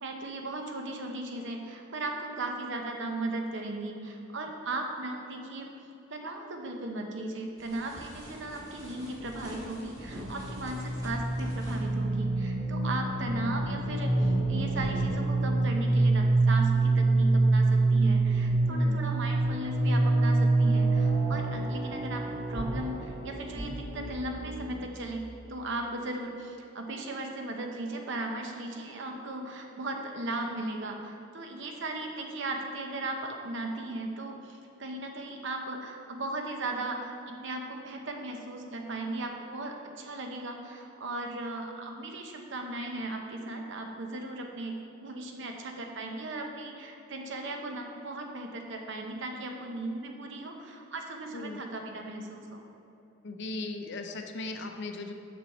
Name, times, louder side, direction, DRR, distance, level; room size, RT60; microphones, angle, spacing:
voice 1, 0.0-5.7 6.1-25.2 25.5-52.6, right 2 dB, 60° right, 3 dB, 0.9 m, -37 dB
sound 1, 7.6-11.9, equal, 20° right, 1.5 m, -46 dB
sound 2, 8.8-9.3 10.0-24.9, right 2 dB, 35° right, 0.9 m, -26 dB
voice 2, 18.7-19.0 51.3-51.6 53.2-55.1, left 2 dB, 60° left, 5 dB, 0.6 m, -37 dB
7.0 x 6.8 x 4.3 m, 2.9 s
head